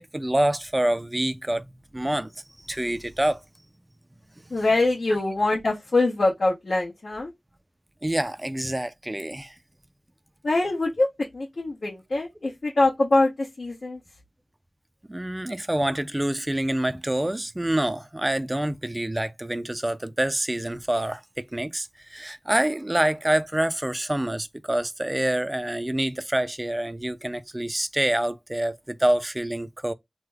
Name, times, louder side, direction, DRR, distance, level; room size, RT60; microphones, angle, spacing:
voice 1, 0.0-1.7 1.9-2.3 2.6-3.4 4.4-4.6 5.1-5.2 8.0-9.5 15.1-29.9, right 1 dB, 20° right, 0.4 m, -26 dB
voice 2, 4.5-7.3 10.4-11.1 11.3-14.0, left 2 dB, 70° left, 1.0 m, -23 dB
3.3 x 2.2 x 3.3 m
wide cardioid pair, 75°, 0 cm